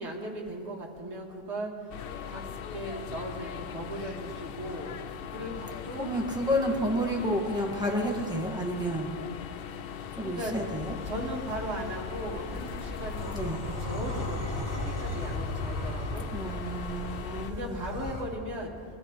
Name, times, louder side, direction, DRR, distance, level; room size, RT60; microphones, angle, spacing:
voice 1, 0.0-1.7 2.2-2.4 2.7-4.9 5.3-6.1 10.2-10.6 11.1-16.3 17.4-18.7, equal, 75° right, -2 dB, 2.2 m, -37 dB
sound 1, 1.9-17.5, left 7 dB, 65° left, 0.7 m, -40 dB
voice 2, 6.0-9.1 10.1-10.9 13.3-13.6 16.3-17.8, equal, 5° right, -1 dB, 1.6 m, -30 dB
sound 2, 10.7-18.2, left 1 dB, 80° left, 2.7 m, -36 dB
22.0 x 13.0 x 3.1 m, 2.1 s
omnidirectional pair, 1.1 m